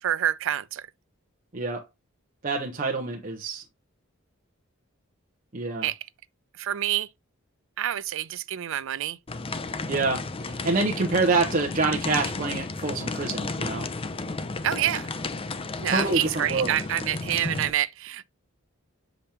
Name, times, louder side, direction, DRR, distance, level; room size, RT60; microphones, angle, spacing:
voice 1, 0.0-0.9 5.8-6.0 6.5-7.1 7.8-9.2 14.6-15.1 15.8-18.2, right 11 dB, 65° right, 0.4 m, -27 dB
voice 2, 1.5-1.8 2.4-3.6 5.5-5.8 9.9-13.9 15.9-16.7, right 3 dB, 40° right, 0.9 m, -26 dB
sound 1, 9.3-17.7, left 3 dB, 25° left, 0.5 m, -33 dB
7.0 x 5.1 x 2.9 m
head